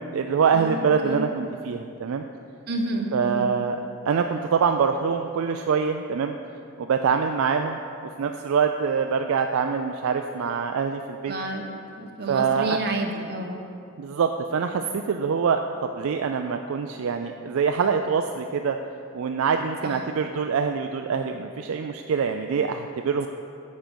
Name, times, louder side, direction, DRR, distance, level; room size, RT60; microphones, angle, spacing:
voice 1, 0.0-2.2 3.1-3.8 4.1-6.4 6.8-7.8 8.2-11.3 12.3-12.8 14.0-18.8 19.1-23.3, right 6 dB, 70° right, 5 dB, 0.4 m, -24 dB
voice 2, 0.5-1.3 2.7-3.5 11.2-11.6 11.9-13.6 19.8-20.0, right 2 dB, 50° right, 1 dB, 1.1 m, -30 dB
9.4 x 7.5 x 5.2 m, 2.5 s
head